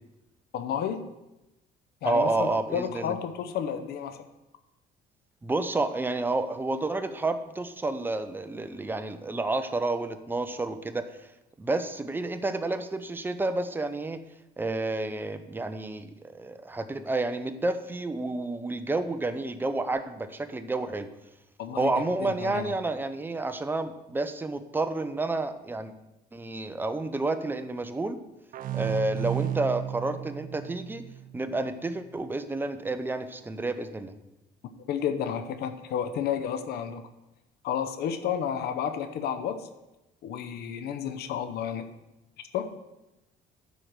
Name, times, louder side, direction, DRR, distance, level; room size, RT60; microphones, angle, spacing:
voice 1, 0.5-1.1 2.0-4.2 21.6-22.7 34.8-37.0 37.6-39.7 40.2-41.9 42.5-42.7, left 8 dB, 70° left, 9 dB, 0.8 m, -31 dB
voice 2, 2.0-3.1 5.4-11.2 11.6-14.2 14.6-21.1 21.8-25.9 26.3-28.2 28.7-31.0 31.3-34.1, right 2 dB, 10° right, 9 dB, 0.7 m, -30 dB
sound 1, 28.5-32.0, right 11 dB, 55° right, 0.4 m, -34 dB
10.5 x 4.7 x 6.6 m, 0.97 s
cardioid pair, 110°, 17 cm